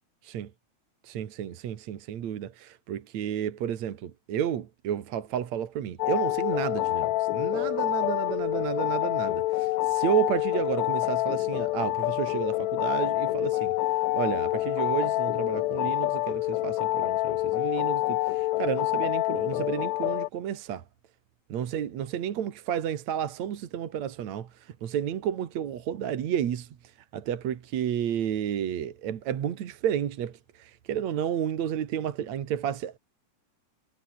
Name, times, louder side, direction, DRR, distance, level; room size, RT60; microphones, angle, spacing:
voice 1, 1.0-13.7 14.1-20.8 21.5-24.5 24.8-26.7 27.1-30.3 30.6-33.0, right 9 dB, 70° right, 2.9 m, -31 dB
sound 1, 6.0-20.3, left 18 dB, 80° left, 1.9 m, -27 dB
omnidirectional pair, 3.3 m